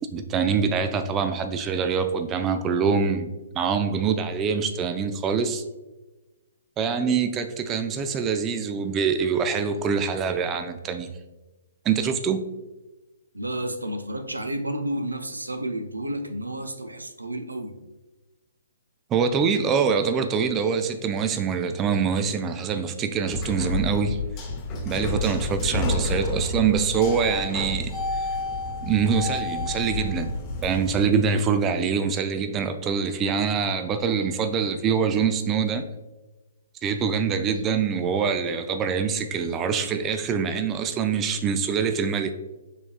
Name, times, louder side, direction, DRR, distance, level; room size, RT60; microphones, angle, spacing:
voice 1, 0.1-5.6 6.8-11.1 11.9-12.4 19.1-24.2 24.9-27.9 28.2-28.3 28.8-30.3 30.6-35.8 36.8-42.3, right 6 dB, 20° right, 8 dB, 0.3 m, -24 dB
voice 2, 13.3-17.7, right 1 dB, 85° right, 7 dB, 0.5 m, -31 dB
sound 1, 23.3-31.1, left 2 dB, 25° left, 0.7 m, -29 dB
6.0 x 3.5 x 2.3 m, 1.1 s
figure-of-eight pair, 125°, 0 cm